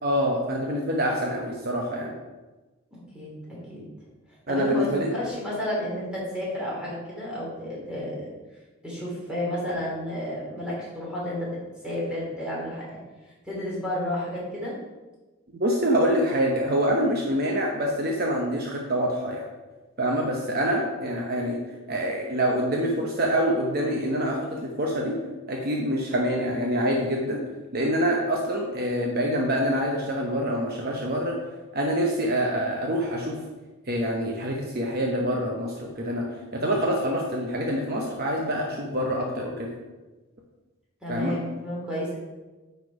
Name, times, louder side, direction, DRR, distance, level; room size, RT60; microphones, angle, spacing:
voice 1, 0.0-2.1 4.5-5.1 15.6-19.4 20.0-21.6 21.9-25.2 25.5-27.4 27.7-31.4 31.7-33.4 33.9-36.2 36.5-39.7 41.1-41.4, equal, 45° right, -1 dB, 0.9 m, -26 dB
voice 2, 2.9-3.8 4.5-8.3 8.8-11.6 11.8-13.0 13.4-14.7 37.0-37.1 41.0-42.2, left 1 dB, 5° right, -6 dB, 2.9 m, -31 dB
9.4 x 4.7 x 4.8 m, 1.2 s
head